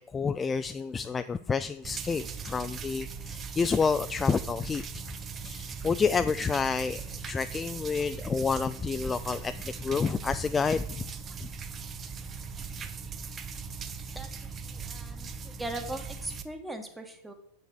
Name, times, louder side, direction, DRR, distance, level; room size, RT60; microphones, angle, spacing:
voice 1, 0.0-5.0 5.4-11.0 11.4-11.5, left 5 dB, 15° left, 0.3 m, -29 dB
sound 1, 1.8-16.4, right 5 dB, 25° right, 0.7 m, -39 dB
voice 2, 14.6-17.3, right 1 dB, 5° right, 1.3 m, -39 dB
8.1 x 6.4 x 6.3 m
figure-of-eight pair, 90°, 0 cm